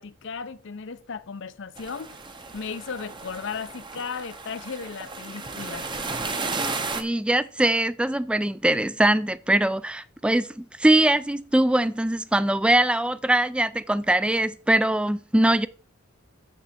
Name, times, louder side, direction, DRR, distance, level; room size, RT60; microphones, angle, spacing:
voice 1, 0.0-2.2 2.5-5.9, left 5 dB, 60° left, 0.6 m, -35 dB
sound 1, 1.8-7.0, right 3 dB, 25° right, 0.7 m, -33 dB
voice 2, 7.0-15.7, right 1 dB, 5° right, 0.3 m, -22 dB
7.3 x 6.8 x 4.4 m
head